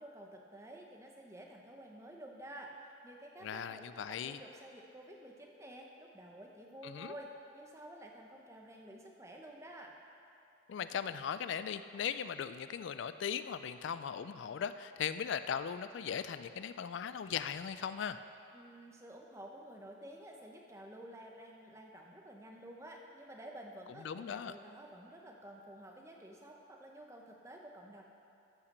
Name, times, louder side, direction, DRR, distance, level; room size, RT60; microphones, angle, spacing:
voice 1, 0.0-9.9 18.5-28.0, right 1 dB, 15° right, 0 dB, 0.9 m, -51 dB
voice 2, 3.4-4.4 6.8-7.1 10.7-18.2 24.0-24.5, left 7 dB, 70° left, 12 dB, 0.3 m, -38 dB
13.5 x 5.8 x 6.6 m, 2.7 s
head